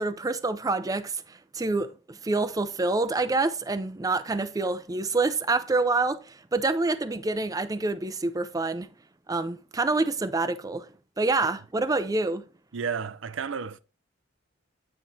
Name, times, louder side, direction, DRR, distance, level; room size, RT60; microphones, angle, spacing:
voice 1, 0.0-8.9 9.3-12.4, right 3 dB, 20° right, 0.4 m, -27 dB
voice 2, 12.7-13.8, right 6 dB, 75° right, 0.5 m, -32 dB
9.1 x 4.4 x 4.0 m
head